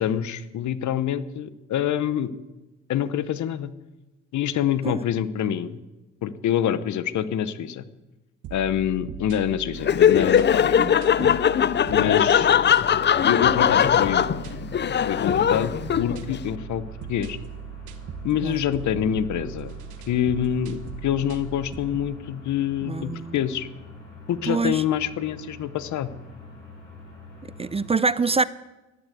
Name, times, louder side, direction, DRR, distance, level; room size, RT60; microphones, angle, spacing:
voice 1, 0.0-2.3 2.9-3.7 4.3-5.8 6.2-7.8 8.5-10.8 11.9-12.5 13.3-14.2 15.1-17.4 18.2-19.7 20.1-23.7 24.3-26.1, left 10 dB, 70° left, 1.0 m, -26 dB
sound 1, 8.4-22.2, right 11 dB, 75° right, 1.1 m, -39 dB
Laughter, 9.8-16.4, left 8 dB, 35° left, 0.5 m, -20 dB
voice 2, 10.8-11.4 18.4-18.6 22.8-23.3 24.5-24.8 27.6-28.4, right 4 dB, 20° right, 0.4 m, -25 dB
sound 2, 12.8-27.9, left 3 dB, 85° left, 7.0 m, -45 dB
13.0 x 11.0 x 8.1 m
cardioid pair, 90°, 30 cm